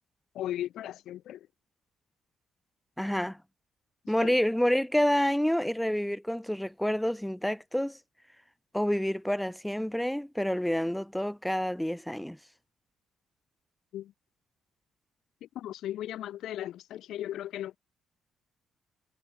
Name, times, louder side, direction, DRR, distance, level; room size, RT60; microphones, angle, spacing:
voice 1, 0.3-1.5 4.0-4.4 13.9-14.1 15.4-17.8, left 12 dB, 80° left, 0.7 m, -37 dB
voice 2, 3.0-3.4 4.1-8.0 8.7-12.4, equal, 5° left, 0.4 m, -28 dB
cardioid pair, 115°, 0 cm